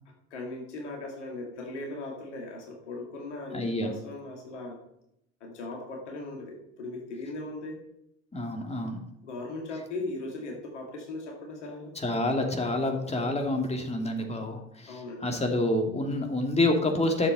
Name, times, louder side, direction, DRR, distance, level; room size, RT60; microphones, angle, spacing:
voice 1, 0.3-4.8 5.4-7.8 9.2-11.9 14.9-15.3, left 2 dB, 80° left, 0 dB, 2.0 m, -38 dB
voice 2, 3.5-3.9 8.3-9.0 11.9-17.3, left 1 dB, 20° left, 3 dB, 2.4 m, -28 dB
11.0 x 7.1 x 5.3 m, 0.79 s
figure-of-eight pair, 55°, 35 cm